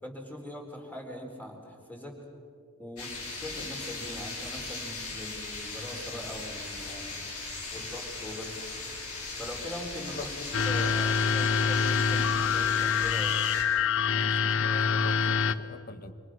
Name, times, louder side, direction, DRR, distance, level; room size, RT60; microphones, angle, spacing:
voice 1, 0.0-2.2 2.8-7.2 7.7-8.7 9.4-13.4, left 1 dB, 10° left, 1 dB, 4.0 m, -41 dB
sound 1, 3.0-13.6, left 3 dB, 85° left, 5.3 m, -38 dB
voice 2, 10.1-10.5 14.1-16.1, left 2 dB, 45° left, 10 dB, 1.5 m, -42 dB
sound 2, 10.5-15.6, left 6 dB, 60° left, 0.8 m, -26 dB
28.5 x 26.5 x 6.3 m, 2.4 s
head